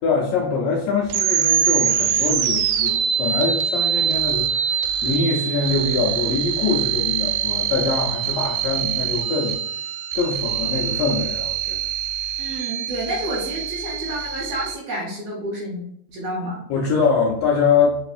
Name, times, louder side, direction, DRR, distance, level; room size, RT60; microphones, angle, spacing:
voice 1, 0.0-9.5 10.1-11.8 16.7-18.0, left 5 dB, 90° left, -2 dB, 1.5 m, -23 dB
sound 1, 1.1-14.7, right 9 dB, 90° right, 2.2 m, -24 dB
voice 2, 12.4-15.8 16.1-16.6, right 1 dB, 70° right, -3 dB, 1.7 m, -29 dB
5.1 x 2.7 x 2.4 m, 0.72 s
omnidirectional pair, 3.8 m